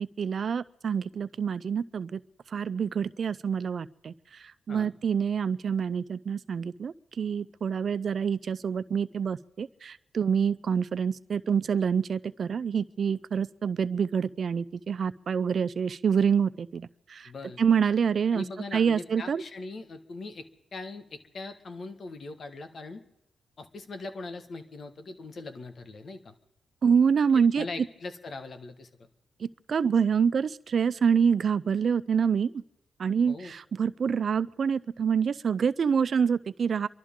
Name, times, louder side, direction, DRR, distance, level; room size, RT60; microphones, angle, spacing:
voice 1, 0.0-2.2 2.5-17.3 17.6-18.5 18.7-19.4 26.8-27.6 29.4-32.6 33.0-36.9, right 6 dB, 55° right, 15 dB, 0.4 m, -26 dB
voice 2, 17.2-17.6 18.3-20.4 20.7-23.0 23.6-26.3 27.5-29.1 33.3-33.5, left 3 dB, 55° left, 8 dB, 1.5 m, -40 dB
27.5 x 12.0 x 3.7 m, 0.88 s
cardioid pair, 80°, 0 cm